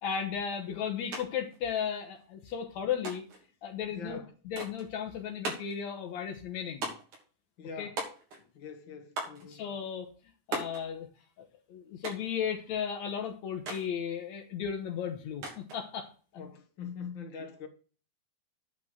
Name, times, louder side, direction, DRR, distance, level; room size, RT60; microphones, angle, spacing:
voice 1, 0.0-3.2 3.6-6.9 7.8-7.9 9.5-10.1 10.5-11.1 11.4-16.1, left 8 dB, 70° left, 2.4 m, -35 dB
sound 1, 1.1-1.2 1.5-2.3 3.0-3.5 4.6-4.9 5.4-5.8 6.8-7.2 8.0-8.5 9.2-9.5 10.5-10.8 12.0-12.4 13.7-13.9 15.4-15.8, right 2 dB, 85° right, 4.4 m, -38 dB
voice 2, 3.9-4.3 7.6-8.0 8.5-9.6 16.4-17.7, left 5 dB, 45° left, 2.3 m, -43 dB
9.5 x 6.1 x 6.5 m
omnidirectional pair, 3.3 m